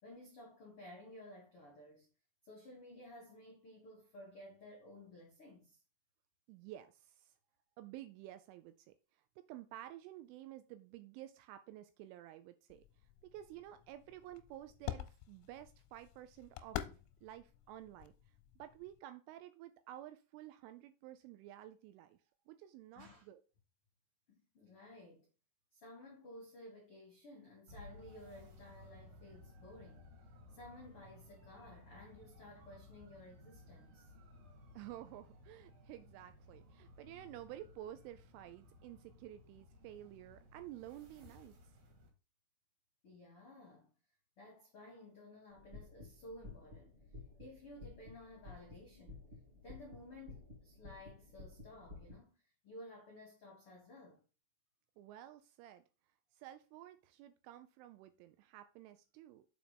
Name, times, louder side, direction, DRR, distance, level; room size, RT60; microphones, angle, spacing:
voice 1, 0.0-2.1 2.4-5.8 22.9-23.2 24.3-25.3 25.7-30.1 30.5-34.1 43.0-43.9 44.4-47.0 47.4-49.3 49.6-52.4 52.6-54.2, left 1 dB, 65° left, 1.3 m, -55 dB
voice 2, 6.5-7.3 7.8-12.8 13.2-16.8 17.2-18.1 18.6-22.2 22.5-23.4 34.7-41.6 55.0-55.8 56.3-59.5, right 13 dB, 85° right, 2.8 m, -52 dB
sound 1, 12.7-19.0, left 13 dB, 90° left, 3.4 m, -48 dB
sound 2, 27.7-42.1, left 2 dB, 55° right, 3.7 m, -59 dB
sound 3, 45.5-52.1, left 3 dB, 35° right, 2.2 m, -54 dB
7.4 x 4.9 x 5.2 m
omnidirectional pair, 6.0 m